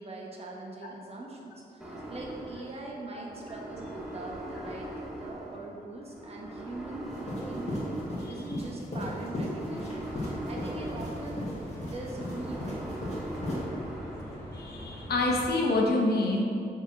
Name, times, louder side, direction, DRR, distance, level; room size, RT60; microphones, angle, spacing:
voice 1, 0.0-7.8 8.3-11.5 11.9-13.2, right 2 dB, 40° right, -2 dB, 1.1 m, -42 dB
sound 1, 1.8-14.4, right 1 dB, 5° right, 0.9 m, -41 dB
sound 2, 7.1-13.6, left 1 dB, 45° left, 1.7 m, -36 dB
sound 3, 9.9-15.5, equal, 15° left, 1.2 m, -43 dB
voice 2, 14.5-16.4, left 2 dB, 80° left, -1 dB, 1.1 m, -27 dB
5.7 x 4.4 x 6.0 m, 2.5 s
wide cardioid pair, 165°, 16 cm